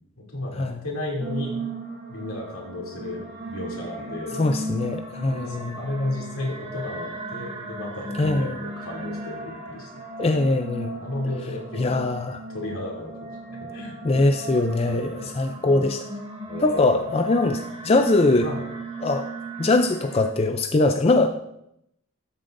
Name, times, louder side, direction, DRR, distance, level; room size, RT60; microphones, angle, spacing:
voice 1, 0.2-1.5 2.1-4.4 5.2-9.9 10.2-10.4 11.0-12.1 12.5-14.2 14.8-15.3 16.5-17.0 17.9-18.0 18.4-18.6, left 1 dB, 85° left, -2 dB, 2.7 m, -33 dB
sound 1, 1.2-20.3, right 2 dB, 30° right, 1.2 m, -36 dB
voice 2, 4.4-5.8 8.2-8.6 10.2-10.9 11.8-12.4 14.0-16.0 16.6-18.5 19.0-19.3 19.6-21.3, left 2 dB, 30° left, 6 dB, 0.4 m, -22 dB
12.5 x 7.5 x 2.6 m, 0.79 s
head